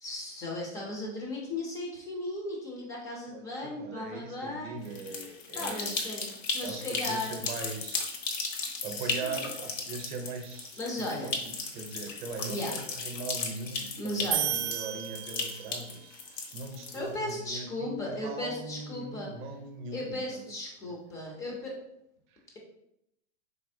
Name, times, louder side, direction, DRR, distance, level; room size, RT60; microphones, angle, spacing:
voice 1, 0.0-4.8 5.5-7.5 8.9-9.4 10.8-11.4 12.5-12.7 14.0-14.6 16.9-19.3 19.9-21.7, left 1 dB, 10° left, -1 dB, 0.3 m, -36 dB
voice 2, 3.3-6.2 6.6-8.5 8.8-20.4 20.8-21.0 22.3-22.4, right 3 dB, 45° right, 5 dB, 0.6 m, -41 dB
sound 1, 4.8-17.3, left 4 dB, 90° left, 0.8 m, -36 dB
sound 2, 14.3-15.9, right 11 dB, 90° right, 0.6 m, -32 dB
4.2 x 2.8 x 2.6 m, 0.80 s
hypercardioid pair, 140°, 37 cm